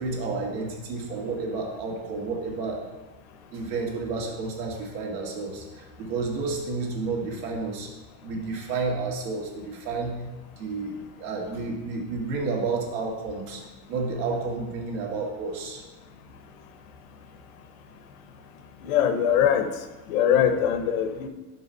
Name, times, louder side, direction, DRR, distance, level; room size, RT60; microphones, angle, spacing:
voice 1, 0.0-2.9 3.5-7.9 8.2-10.2 10.6-13.6 13.9-15.8, right 3 dB, 75° right, 0 dB, 1.9 m, -31 dB
voice 2, 18.8-19.7 20.1-21.3, left 9 dB, 60° left, 8 dB, 0.8 m, -22 dB
5.9 x 5.4 x 5.3 m, 1.2 s
supercardioid pair, 170°, 47 cm